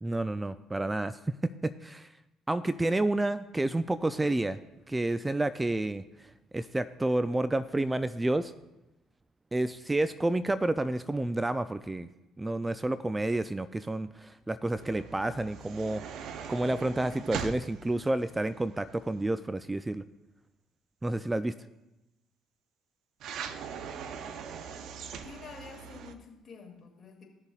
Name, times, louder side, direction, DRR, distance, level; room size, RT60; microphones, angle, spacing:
voice 1, 0.0-2.1 2.5-4.6 4.9-6.0 6.5-8.5 9.5-12.1 12.4-16.0 16.5-20.0 21.0-21.5, right 2 dB, 15° right, 13 dB, 0.3 m, -30 dB
sound 1, 14.8-19.2 23.2-26.1, right 7 dB, 65° right, 0.7 m, -41 dB
voice 2, 25.2-27.2, left 5 dB, 45° left, 0 dB, 2.4 m, -48 dB
16.5 x 6.6 x 2.4 m, 0.97 s
supercardioid pair, 65°, 0 cm